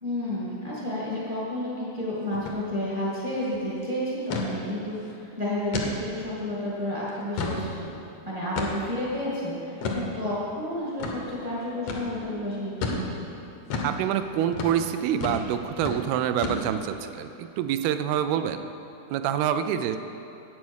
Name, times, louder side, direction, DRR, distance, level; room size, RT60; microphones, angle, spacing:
voice 1, 0.0-7.7 8.2-13.1, left 1 dB, 25° right, -7 dB, 0.7 m, -31 dB
sound 1, 2.3-2.6 2.9-3.0 3.3-3.6 4.3-4.5 5.0-5.1 5.7-5.9 6.4-6.5 7.1-7.6 8.6-8.9 9.8-10.0 11.0-11.2 11.9-12.1 12.8-13.0 13.7-13.9 14.5-14.8 15.2-15.5 15.8-16.0 16.4-16.9, left 3 dB, 85° left, 1.4 m, -30 dB
voice 2, 13.8-18.7 19.1-20.0, right 9 dB, 85° right, 10 dB, 2.4 m, -26 dB
9.5 x 8.4 x 6.3 m, 2.7 s
omnidirectional pair, 4.5 m